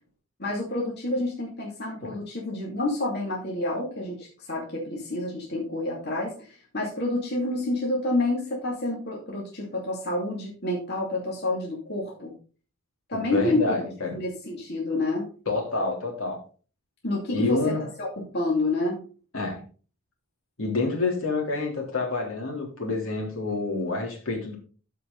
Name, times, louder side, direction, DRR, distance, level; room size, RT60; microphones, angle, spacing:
voice 1, 0.4-12.3 13.1-15.3 17.0-18.1 18.3-19.0, left 2 dB, 50° left, -3 dB, 2.7 m, -29 dB
voice 2, 13.3-14.2 15.5-16.4 17.3-17.8 19.3-19.6 20.6-24.6, left 3 dB, 70° left, 0 dB, 3.5 m, -28 dB
14.0 x 5.0 x 4.0 m, 0.38 s
head